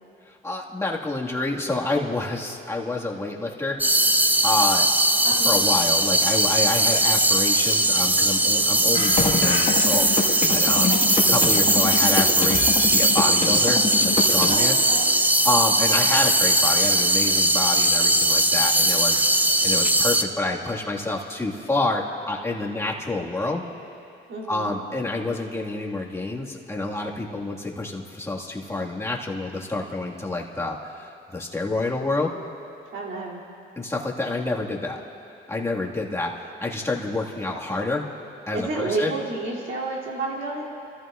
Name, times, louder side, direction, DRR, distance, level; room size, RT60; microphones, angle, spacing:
voice 1, 0.3-3.8 4.4-4.9 5.3-14.8 15.4-19.2 19.6-23.6 24.5-32.3 33.8-35.0 35.5-38.1 38.5-39.1, left 2 dB, 15° left, -2 dB, 1.8 m, -28 dB
sound 1, 3.8-20.2, right 1 dB, 10° right, 0.5 m, -20 dB
voice 2, 5.2-5.6 10.7-11.1 14.5-15.2 24.3-24.8 32.9-33.4 38.5-40.7, right 2 dB, 80° right, -4 dB, 2.8 m, -30 dB
sound 2, 8.9-14.5, left 4 dB, 40° left, 1.7 m, -26 dB
30.0 x 14.0 x 2.5 m, 2.6 s
cardioid pair, 90°, 20 cm